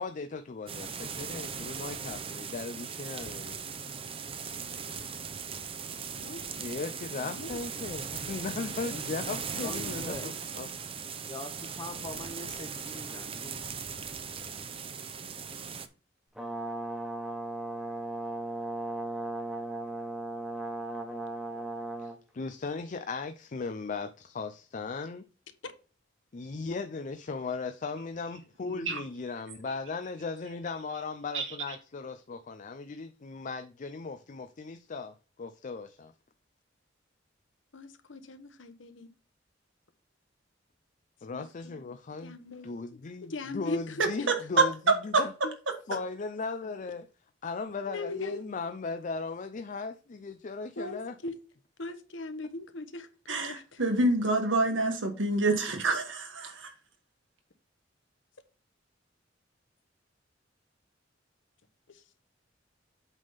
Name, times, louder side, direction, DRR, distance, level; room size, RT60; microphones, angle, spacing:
voice 1, 0.0-4.0 6.6-10.7 22.0-25.2 26.3-36.1 41.2-42.4 42.6-44.7 45.0-45.3 45.9-47.1 47.4-51.2, left 4 dB, 40° left, 0.5 m, -37 dB
sound 1, 0.7-15.9, right 6 dB, 30° right, 0.6 m, -39 dB
voice 2, 6.2-6.7 7.2-7.6 8.6-10.3 25.6-25.7 37.7-39.1 41.3-41.9 42.2-42.7 43.3-44.0 47.9-48.4 50.8-51.3 51.8-53.8 61.9-62.0, left 2 dB, 80° left, 1.0 m, -41 dB
voice 3, 9.5-10.3 11.2-13.7, left 2 dB, 25° left, 0.8 m, -43 dB
Brass instrument, 16.4-22.2, right 2 dB, ahead, 1.3 m, -36 dB
voice 4, 28.7-29.0 31.3-31.8 44.3-44.9 53.3-56.7, right 2 dB, 80° right, 1.7 m, -27 dB
8.2 x 3.6 x 5.7 m
head